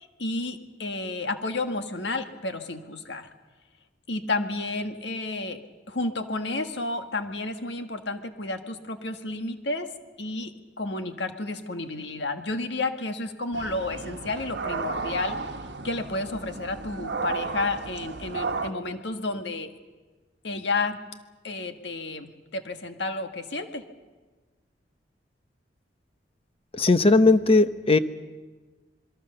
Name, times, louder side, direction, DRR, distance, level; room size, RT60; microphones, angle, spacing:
voice 1, 0.0-3.3 4.1-5.6 5.9-9.9 10.2-10.5 10.8-15.4 15.8-19.7 20.4-21.0 21.4-23.8, left 2 dB, 70° left, 7 dB, 1.7 m, -31 dB
sound 1, 13.5-18.7, right 4 dB, 65° right, 1.2 m, -33 dB
voice 2, 26.7-28.0, left 3 dB, 30° left, 11 dB, 0.9 m, -18 dB
27.0 x 22.0 x 6.8 m, 1.3 s
head